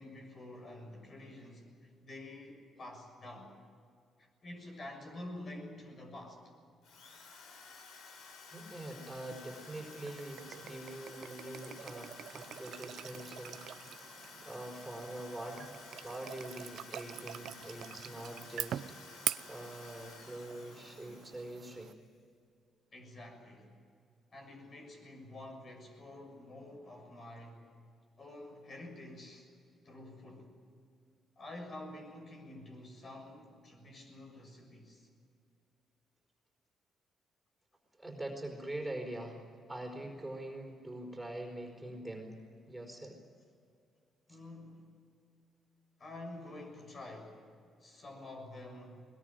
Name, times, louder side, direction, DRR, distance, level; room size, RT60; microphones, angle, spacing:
voice 1, 0.0-3.5 4.2-6.5 22.9-23.7 24.3-27.6 28.2-29.5 29.8-30.6 31.4-35.1 44.3-45.0 46.0-47.5 47.8-49.1, left 1 dB, 45° left, 3 dB, 6.9 m, -48 dB
Drill, 6.8-22.0, left 4 dB, 80° left, 3.9 m, -53 dB
voice 2, 8.5-13.8 14.4-19.0 19.5-21.9 38.0-39.4 39.7-42.4 42.7-43.2 44.3-44.4, right 1 dB, 10° right, 2 dB, 4.6 m, -44 dB
sound 1, 9.3-21.9, right 10 dB, 70° right, 0.7 m, -45 dB
21.5 x 21.0 x 9.1 m, 2.3 s
cardioid pair, 90°, 0 cm